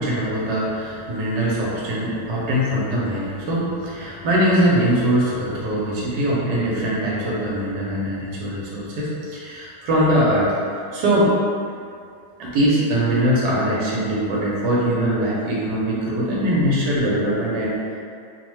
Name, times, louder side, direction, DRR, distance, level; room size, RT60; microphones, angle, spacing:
voice 1, 0.0-11.4 12.4-18.0, equal, 90° right, -5 dB, 1.2 m, -22 dB
2.8 x 2.1 x 3.0 m, 2.3 s
omnidirectional pair, 1.8 m